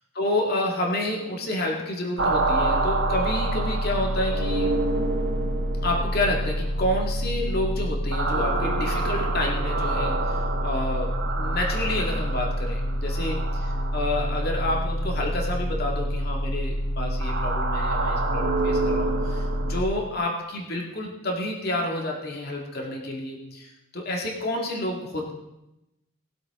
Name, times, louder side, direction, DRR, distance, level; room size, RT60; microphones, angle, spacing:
voice 1, 0.2-4.7 5.8-13.4 13.9-25.3, left 1 dB, 45° left, 0 dB, 2.2 m, -29 dB
sound 1, 2.2-19.8, right 1 dB, 65° right, 1.2 m, -26 dB
20.0 x 7.8 x 3.7 m, 0.93 s
head